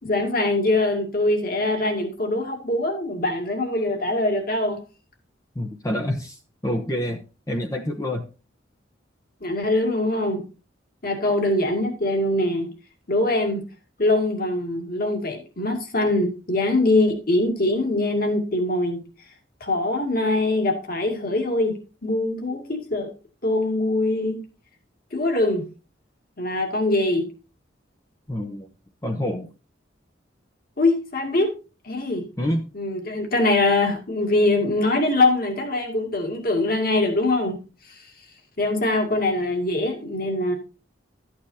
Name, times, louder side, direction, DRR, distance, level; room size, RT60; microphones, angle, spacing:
voice 1, 0.0-4.8 9.4-10.4 11.0-12.7 13.1-13.6 14.0-19.0 19.6-21.7 22.0-23.1 23.4-24.4 25.1-25.6 26.4-27.3 30.8-31.5 31.8-32.3 32.7-37.6 38.6-40.5, left 2 dB, 50° left, 3 dB, 2.3 m, -23 dB
voice 2, 5.6-6.4 6.6-8.2 28.3-28.7 29.0-29.5 32.4-32.6, left 1 dB, 20° left, 2 dB, 0.8 m, -27 dB
13.0 x 8.7 x 2.7 m, 0.32 s
head